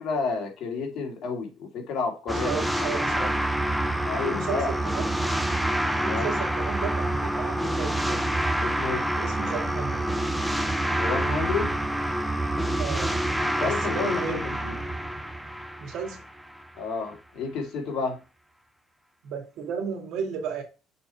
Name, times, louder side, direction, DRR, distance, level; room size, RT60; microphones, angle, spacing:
voice 1, 0.0-2.9 3.2-3.3 4.0-4.7 6.1-6.3 8.6-9.0 10.9-11.7 13.4-14.8 16.8-18.2, left 5 dB, 55° left, 2.3 m, -31 dB
sound 1, 2.3-16.6, right 1 dB, ahead, 0.6 m, -27 dB
voice 2, 2.4-3.4 4.2-5.1 6.0-8.2 9.2-10.1 12.8-13.2 13.6-14.5 15.8-16.2 19.2-20.6, right 6 dB, 65° right, 2.2 m, -34 dB
6.7 x 4.2 x 4.5 m
cardioid pair, 140°, 0 cm